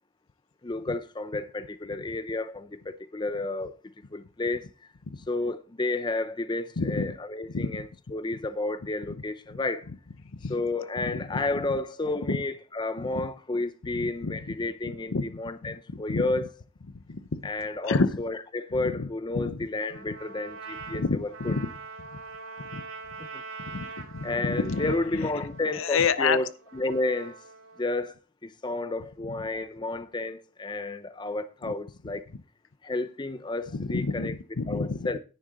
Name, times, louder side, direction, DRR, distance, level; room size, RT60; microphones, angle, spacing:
voice 1, 0.6-3.8 4.1-4.7 5.3-9.9 10.5-16.5 17.4-21.6 23.2-23.4 24.2-27.4 27.8-28.2 28.4-32.2 32.8-34.4 34.7-35.2, left 2 dB, 20° left, 0.5 m, -31 dB
voice 2, 6.8-7.1 7.5-7.7 9.5-9.6 10.4-10.5 11.0-11.4 12.3-12.4 13.0-13.1 13.9-14.4 15.1-15.8 16.1-16.3 17.1-17.4 17.8-18.2 18.8-19.1 19.3-19.7 20.9-21.7 22.7-22.8 23.7-24.9 25.2-25.3 25.7-26.4 33.7-35.1, left 4 dB, 75° left, 0.7 m, -29 dB
Trumpet, 19.9-28.0, right 4 dB, 80° right, 3.4 m, -44 dB
10.0 x 9.5 x 3.9 m
head